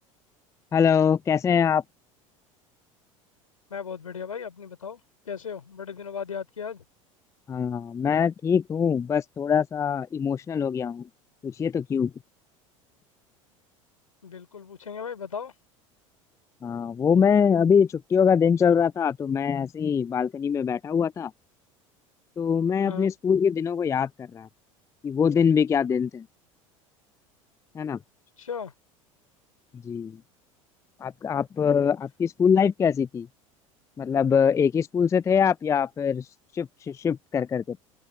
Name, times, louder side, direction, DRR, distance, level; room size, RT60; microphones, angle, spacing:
voice 1, 0.7-1.8 7.5-11.1 11.4-12.1 16.6-21.3 22.4-24.5 25.0-26.2 27.7-28.0 29.8-30.2 31.0-33.3 34.0-36.2 36.5-37.8, left 7 dB, 15° left, 0.4 m, -23 dB
voice 2, 3.7-6.8 14.2-15.5 22.8-23.1 28.4-28.7, left 6 dB, 80° left, 4.5 m, -36 dB
figure-of-eight pair, 75°, 17 cm